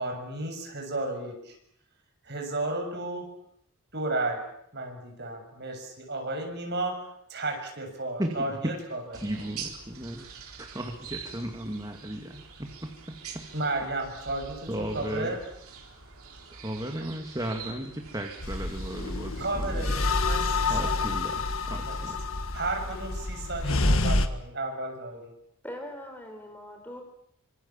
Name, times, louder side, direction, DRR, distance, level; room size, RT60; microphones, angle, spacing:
voice 1, 0.0-1.6 2.2-3.3 3.9-4.4 4.7-9.2 13.5-14.5 14.8-15.4 19.4-21.1 21.8-22.0 22.5-25.4, right 2 dB, 50° right, 3 dB, 6.9 m, -33 dB
voice 2, 8.2-8.6 9.1-13.4 14.7-15.4 16.5-19.9 20.7-22.2, right 1 dB, 15° right, 2 dB, 2.4 m, -36 dB
sound 1, 9.1-21.4, right 5 dB, 75° right, 4.1 m, -45 dB
sound 2, 18.4-24.3, left 2 dB, 65° left, 1.8 m, -28 dB
voice 3, 25.6-27.0, left 1 dB, 10° left, 4 dB, 4.2 m, -41 dB
26.0 x 26.0 x 7.4 m, 0.72 s
head